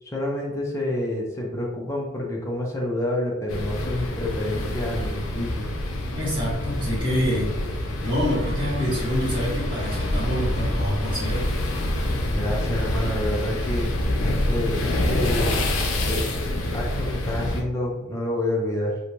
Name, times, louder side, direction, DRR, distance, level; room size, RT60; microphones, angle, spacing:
voice 1, 0.0-5.7 12.3-15.5 16.0-19.0, left 1 dB, 15° left, -3 dB, 0.4 m, -28 dB
sound 1, 3.5-17.6, left 1 dB, 80° left, 0.5 m, -26 dB
voice 2, 6.1-11.5, equal, 25° right, -7 dB, 1.0 m, -27 dB
sound 2, 6.5-7.1 8.0-11.5, equal, 65° right, 0.5 m, -43 dB
2.6 x 2.1 x 3.0 m, 1.1 s
head